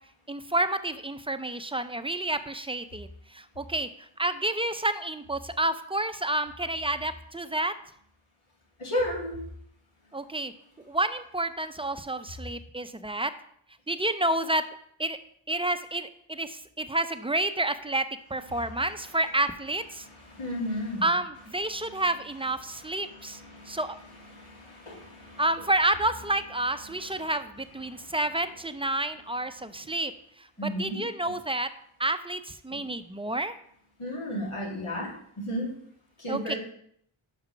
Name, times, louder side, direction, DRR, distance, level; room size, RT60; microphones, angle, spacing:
voice 1, 0.3-7.7 10.1-10.5 10.9-13.3 13.9-14.7 15.0-15.2 15.5-20.1 21.0-24.0 25.4-30.1 30.4-31.7 32.0-33.5 36.3-36.5, right 1 dB, 10° right, 10 dB, 0.5 m, -29 dB
voice 2, 8.8-9.4 18.5-18.6 20.0-21.0 21.8-22.0 23.0-23.8 24.3-25.4 27.2-27.3 28.0-28.1 30.6-31.0 34.0-35.1 35.4-35.7 36.2-36.6, equal, 80° left, -5 dB, 2.7 m, -33 dB
5.8 x 5.8 x 5.7 m, 0.68 s
wide cardioid pair, 40°, 50 cm